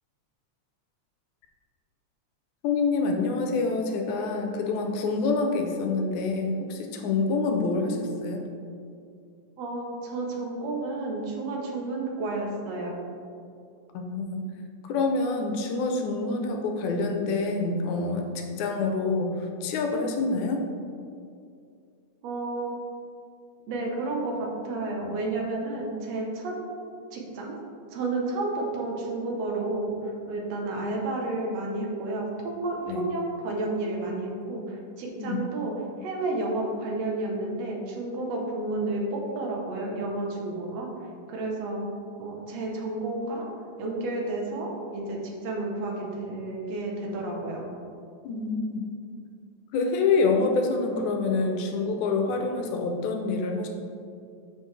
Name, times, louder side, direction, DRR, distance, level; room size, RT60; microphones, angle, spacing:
voice 1, 2.6-8.5 13.9-14.5 14.8-20.7 32.9-33.1 35.2-35.5 48.2-48.9 49.7-53.7, left 3 dB, 80° left, 3 dB, 2.1 m, -27 dB
voice 2, 9.6-13.0 22.2-22.7 23.7-26.5 27.1-27.6 27.9-35.7 36.0-40.9 41.3-41.9 42.2-43.5 43.8-47.7, right 2 dB, 70° right, -1 dB, 1.9 m, -31 dB
7.1 x 5.4 x 3.2 m, 2.4 s
omnidirectional pair, 3.4 m